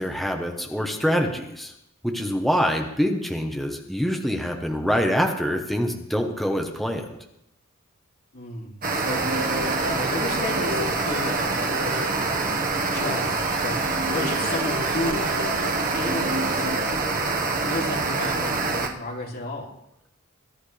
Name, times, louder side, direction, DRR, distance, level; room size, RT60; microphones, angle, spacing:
voice 1, 0.0-1.7 2.0-7.1, equal, ahead, 2 dB, 1.1 m, -25 dB
voice 2, 8.3-9.2 9.8-13.8 14.1-19.7, left 1 dB, 45° left, -2 dB, 3.0 m, -33 dB
sound 1, 8.8-18.9, right 3 dB, 45° right, 1.5 m, -25 dB
sound 2, 9.0-16.9, equal, 80° right, 2.1 m, -34 dB
22.0 x 11.0 x 3.4 m, 0.82 s
head